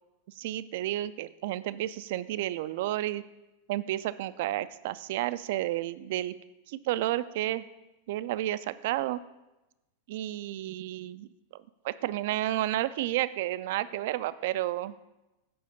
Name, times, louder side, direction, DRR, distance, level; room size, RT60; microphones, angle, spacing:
voice 1, 0.4-3.2 3.7-6.3 6.7-7.7 8.1-9.2 10.1-14.9, right 14 dB, 50° right, 16 dB, 0.3 m, -31 dB
7.7 x 5.5 x 5.4 m, 1.0 s
figure-of-eight pair, 90°, 0 cm